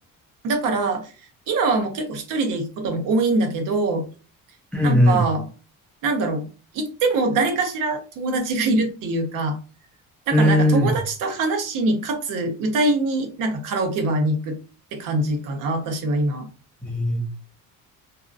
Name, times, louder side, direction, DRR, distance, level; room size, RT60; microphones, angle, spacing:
voice 1, 0.4-1.1 1.5-4.0 4.8-5.5 6.0-6.5 6.7-9.6 10.3-14.5 14.9-16.5, right 2 dB, 75° right, 5 dB, 0.8 m, -23 dB
voice 2, 4.7-5.2 10.3-10.9 16.8-17.2, equal, 5° left, -1 dB, 0.4 m, -18 dB
2.7 x 2.3 x 2.4 m, 0.35 s
cardioid pair, 160°, 32 cm